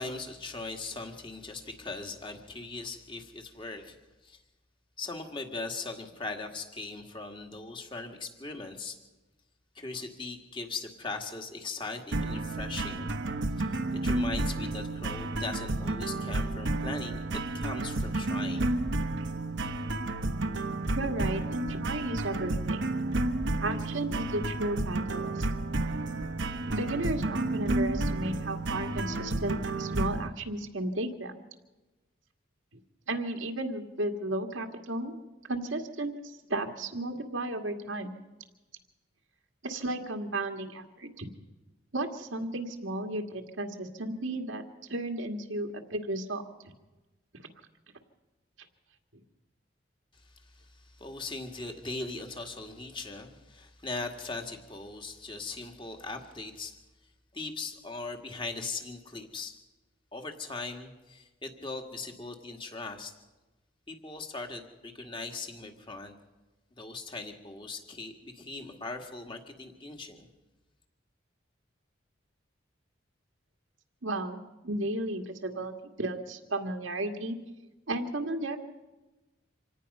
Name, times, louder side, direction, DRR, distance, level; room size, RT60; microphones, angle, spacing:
voice 1, 0.0-4.0 4.2-4.4 5.0-9.0 9.8-13.1 13.6-18.7 50.1-56.8 57.3-59.5 60.1-63.1 63.9-66.2 66.8-70.3, left 3 dB, 25° left, 4 dB, 1.9 m, -40 dB
sound 1, 12.1-30.3, right 2 dB, 70° right, 1.1 m, -31 dB
voice 2, 20.9-22.8 23.6-25.5 26.7-31.4 33.1-35.1 35.5-38.2 39.6-41.3 41.9-44.6 44.9-46.4 74.0-77.4 77.9-78.6, right 2 dB, 90° right, 4 dB, 2.0 m, -34 dB
26.0 x 18.0 x 5.5 m, 1.1 s
head